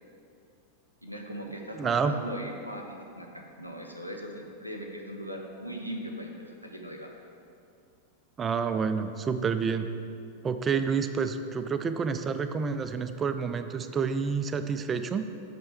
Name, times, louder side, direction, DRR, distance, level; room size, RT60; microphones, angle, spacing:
voice 1, 1.0-2.8 3.1-7.1, equal, 90° left, 1 dB, 0.7 m, -39 dB
voice 2, 1.7-2.1 8.4-9.9 10.4-15.2, right 6 dB, 20° right, 9 dB, 0.3 m, -29 dB
6.3 x 5.4 x 4.2 m, 2.5 s
figure-of-eight pair, 90°, 0 cm